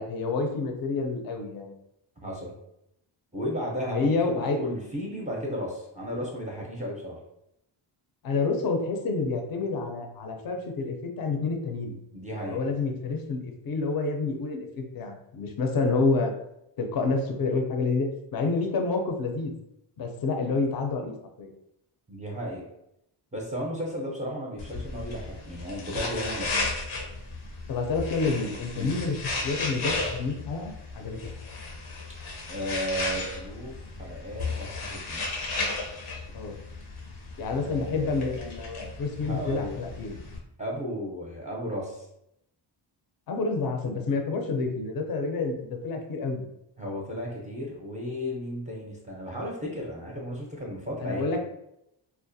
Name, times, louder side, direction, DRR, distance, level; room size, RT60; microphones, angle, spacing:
voice 1, 0.0-1.8 3.9-4.6 8.2-12.0 12.3-16.3 16.8-19.6 20.0-21.5 27.7-31.2 36.3-36.6 37.4-40.2 43.3-46.4 51.0-51.4, left 3 dB, 45° left, 4 dB, 0.5 m, -28 dB
voice 2, 2.2-2.6 3.3-7.2 12.1-12.6 22.1-22.6 23.3-26.6 28.7-29.0 32.5-35.3 37.6-38.4 39.2-39.8 40.6-42.1 46.8-51.2, equal, 15° right, -3 dB, 0.5 m, -34 dB
sound 1, 24.6-40.4, left 3 dB, 90° left, 0.7 m, -35 dB
2.3 x 2.1 x 2.6 m, 0.82 s
cardioid pair, 80°, 49 cm